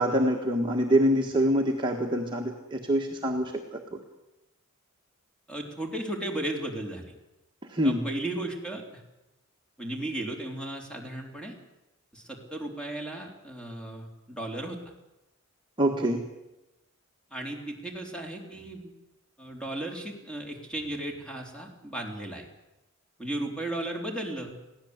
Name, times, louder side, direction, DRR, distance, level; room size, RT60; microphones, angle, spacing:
voice 1, 0.0-3.8 7.7-8.0 15.8-16.2, equal, 20° right, 0 dB, 1.6 m, -25 dB
voice 2, 5.5-7.1 7.8-9.0 9.8-11.5 12.1-14.8 17.3-18.9 19.4-22.5 23.2-24.5, right 1 dB, 5° left, 1 dB, 3.7 m, -35 dB
22.0 x 16.5 x 8.1 m, 0.97 s
head